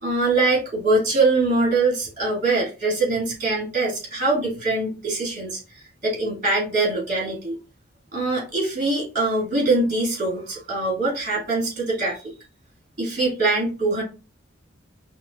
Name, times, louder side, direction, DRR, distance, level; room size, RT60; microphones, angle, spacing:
voice 1, 0.0-7.6 8.1-12.2 13.0-14.0, right 2 dB, 40° right, -3 dB, 2.4 m, -23 dB
5.8 x 2.4 x 2.6 m, 0.33 s
head